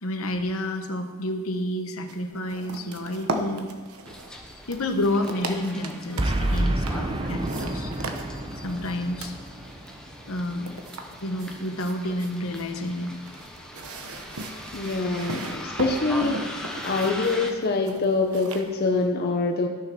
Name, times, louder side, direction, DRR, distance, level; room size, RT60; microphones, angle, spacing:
voice 1, 0.0-3.7 4.7-7.9 8.6-9.3 10.3-10.7 11.2-13.1, left 1 dB, 65° left, 6 dB, 1.1 m, -29 dB
sound 1, 2.1-19.1, right 2 dB, 75° right, 1.1 m, -38 dB
Bus, 4.1-17.5, equal, 5° left, 1.1 m, -40 dB
Boom, 6.2-10.6, right 1 dB, 25° right, 0.8 m, -29 dB
voice 2, 14.7-16.4 16.8-19.7, left 3 dB, 45° left, 2 dB, 0.8 m, -25 dB
13.5 x 6.7 x 6.1 m, 1.5 s
head